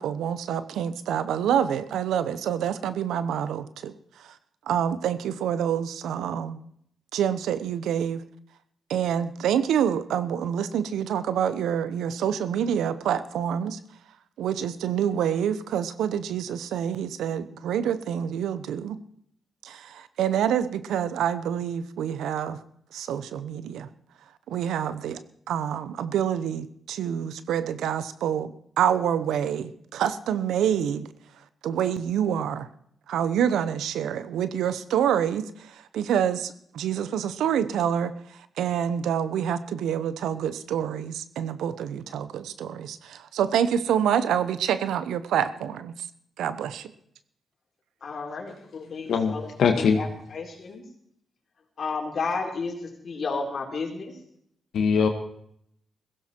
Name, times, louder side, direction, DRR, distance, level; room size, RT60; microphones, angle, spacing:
voice 1, 0.0-3.9 4.2-4.3 4.7-6.6 7.1-8.2 8.9-13.8 14.4-19.0 19.6-22.6 22.9-23.9 24.5-25.2 25.5-28.5 28.8-31.1 31.6-32.7 33.1-38.1 38.6-45.9 46.4-46.9, right 9 dB, 85° right, 14 dB, 0.9 m, -27 dB
voice 2, 48.0-50.8 51.8-54.2, left 4 dB, 60° left, 1 dB, 4.3 m, -33 dB
voice 3, 49.6-50.0 54.7-55.1, left 6 dB, 75° left, 5 dB, 1.8 m, -21 dB
16.0 x 16.0 x 4.5 m, 0.69 s
supercardioid pair, 55°, 0 cm